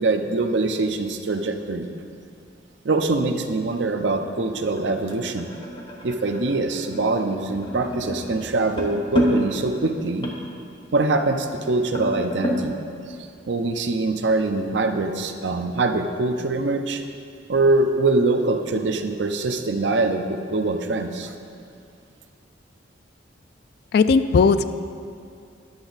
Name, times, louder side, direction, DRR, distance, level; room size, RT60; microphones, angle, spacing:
voice 1, 0.0-1.9 2.8-5.5 6.0-10.3 10.9-12.8 13.5-17.0 17.5-21.3, right 3 dB, 75° right, 6 dB, 0.6 m, -23 dB
sound 1, 3.3-12.7, equal, 25° left, 0.9 m, -31 dB
voice 2, 23.9-24.7, left 5 dB, 60° left, 12 dB, 0.3 m, -17 dB
10.5 x 6.9 x 4.0 m, 2.4 s
head